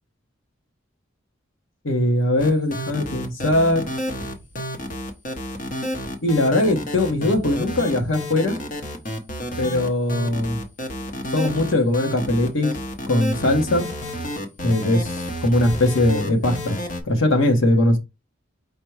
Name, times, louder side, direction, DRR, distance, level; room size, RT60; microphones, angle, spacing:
voice 1, 1.8-3.9 6.2-8.6 9.6-10.6 11.3-12.7 13.1-13.9 14.6-16.8 17.1-18.0, left 1 dB, 85° left, 1.1 m, -20 dB
sound 1, 2.4-17.0, equal, 45° left, 0.9 m, -30 dB
5.1 x 2.2 x 4.6 m
head